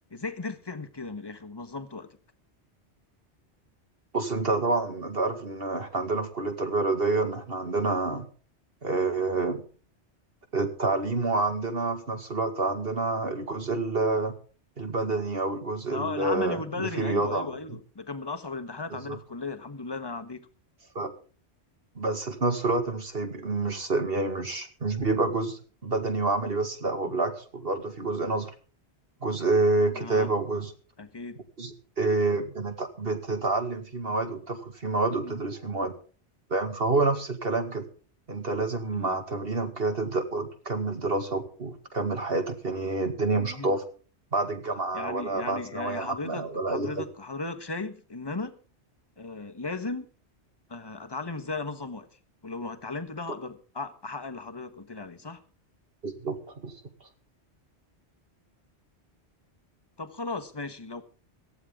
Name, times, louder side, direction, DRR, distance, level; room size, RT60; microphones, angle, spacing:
voice 1, 0.1-2.2 15.9-20.5 29.9-30.3 31.0-31.4 35.1-35.4 38.9-39.2 43.3-43.7 44.9-48.6 49.2-50.0 50.7-52.1 52.4-55.4 60.0-61.0, left 3 dB, 20° left, 8 dB, 1.3 m, -36 dB
voice 2, 4.1-8.3 8.8-9.6 10.5-14.3 14.8-17.5 18.9-19.2 21.0-21.1 22.0-28.5 29.2-30.7 31.6-35.9 36.5-37.9 38.3-43.8 44.3-47.0 56.0-56.7, right 3 dB, 60° right, 6 dB, 2.3 m, -28 dB
18.0 x 14.5 x 3.8 m, 0.38 s
omnidirectional pair, 1.1 m